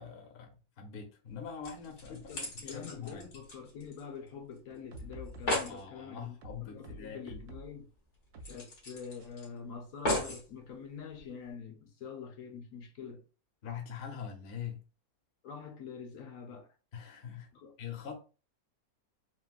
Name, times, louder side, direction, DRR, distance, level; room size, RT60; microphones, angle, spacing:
voice 1, 0.0-3.3 5.7-7.4 13.6-14.8 16.9-17.5 17.8-18.2, left 7 dB, 50° left, 0.7 m, -43 dB
sound 1, 1.3-1.4 1.6-4.3 4.6-4.7 5.0-5.1 5.3-5.8 7.3-7.4 7.7-7.8 8.4-9.4 10.0-10.5 11.2-11.3, left 1 dB, 85° left, 1.8 m, -36 dB
voice 2, 2.1-6.3 6.6-7.9 8.5-13.2 14.1-14.2 15.4-16.7 17.5-17.7, left 6 dB, 70° left, 1.1 m, -45 dB
sound 2, 4.7-6.0 6.4-7.8 8.3-8.6 9.2-9.3, right 1 dB, 80° right, 1.1 m, -48 dB
3.8 x 2.0 x 2.4 m
omnidirectional pair, 1.6 m